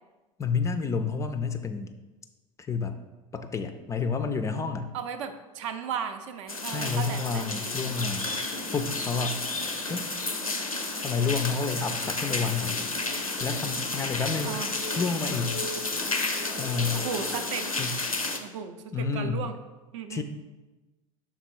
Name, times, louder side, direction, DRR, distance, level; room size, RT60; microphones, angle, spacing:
voice 1, 0.4-1.9 2.6-3.0 3.3-4.9 6.6-8.3 8.7-9.4 9.9-10.1 10.5-10.7 11.0-12.8 13.4-14.5 15.0-15.6 16.6-17.0 17.8-17.9 18.9-19.4 20.1-20.2, left 5 dB, 15° left, 8 dB, 0.3 m, -29 dB
voice 2, 4.9-7.8 14.4-14.8 16.9-17.7 18.3-19.6 19.9-20.2, right 7 dB, 60° right, 9 dB, 0.5 m, -35 dB
sound 1, 6.5-18.4, left 3 dB, 90° left, 0.5 m, -31 dB
5.8 x 3.8 x 4.5 m, 1.1 s
figure-of-eight pair, 75°, 18 cm